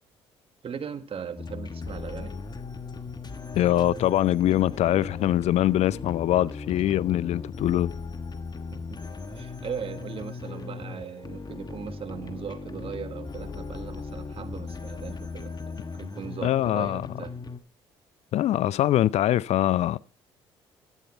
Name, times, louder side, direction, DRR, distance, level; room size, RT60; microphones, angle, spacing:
voice 1, 0.6-2.4 8.9-9.0 9.3-17.3, right 7 dB, 50° right, 1.5 m, -38 dB
sound 1, 1.4-17.6, left 4 dB, 35° left, 1.3 m, -38 dB
voice 2, 3.5-7.9 16.4-17.0 18.3-20.0, left 13 dB, 60° left, 0.5 m, -23 dB
12.5 x 8.3 x 4.3 m
hypercardioid pair, 55°, 12 cm